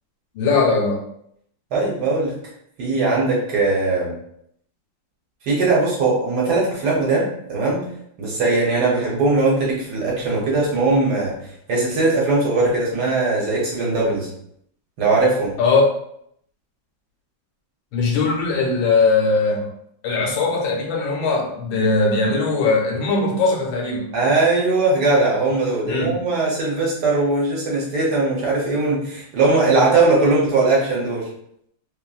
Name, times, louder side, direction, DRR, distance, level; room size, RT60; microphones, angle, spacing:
voice 1, 0.3-1.0 15.6-15.8 17.9-19.7 20.0-24.1 25.9-26.2, left 3 dB, 80° left, 0 dB, 1.4 m, -20 dB
voice 2, 1.7-2.3 2.8-4.1 5.5-7.8 8.2-11.3 11.7-14.3 15.0-15.5 24.1-31.2, right 3 dB, 60° right, -4 dB, 1.3 m, -19 dB
3.2 x 2.5 x 2.3 m, 0.71 s
omnidirectional pair, 2.1 m